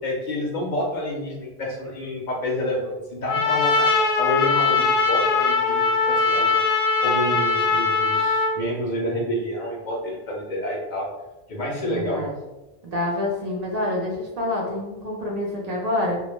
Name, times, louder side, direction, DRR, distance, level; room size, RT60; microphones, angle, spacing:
voice 1, 0.0-11.1 11.5-12.2, left 1 dB, 55° left, -1 dB, 0.6 m, -29 dB
Trumpet, 3.3-8.6, left 4 dB, 85° left, 0.9 m, -21 dB
voice 2, 11.8-12.3 12.8-16.2, left 1 dB, 50° right, -2 dB, 0.5 m, -27 dB
2.2 x 2.1 x 3.0 m, 1.1 s
omnidirectional pair, 1.1 m